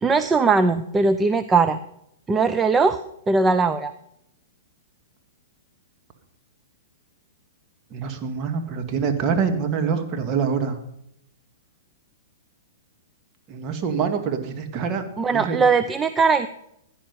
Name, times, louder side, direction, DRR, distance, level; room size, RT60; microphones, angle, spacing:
voice 1, 0.0-1.8 2.3-3.0 3.3-3.9 15.2-16.5, right 4 dB, 15° right, 9 dB, 0.7 m, -19 dB
voice 2, 7.9-10.8 13.5-15.0 15.3-15.6, right 6 dB, 35° right, 5 dB, 2.2 m, -25 dB
16.5 x 10.0 x 5.4 m, 0.78 s
hypercardioid pair, 110°, 0 cm